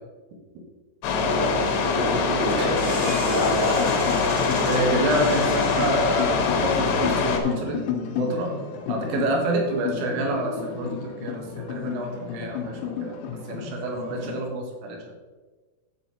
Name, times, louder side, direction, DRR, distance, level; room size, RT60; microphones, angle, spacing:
sound 1, 1.0-7.4, left 4 dB, 70° left, 2.9 m, -23 dB
voice 1, 1.2-4.0 9.7-9.8, right 1 dB, 60° right, -8 dB, 4.6 m, -29 dB
sound 2, 2.1-14.4, left 7 dB, 85° left, 3.7 m, -33 dB
sound 3, 2.4-7.9, equal, 25° right, 1.1 m, -37 dB
voice 2, 4.6-7.8 8.2-8.5 8.9-13.2 13.5-15.1, right 2 dB, 80° right, 1 dB, 4.2 m, -28 dB
9.6 x 7.5 x 4.1 m, 1.3 s
omnidirectional pair, 5.9 m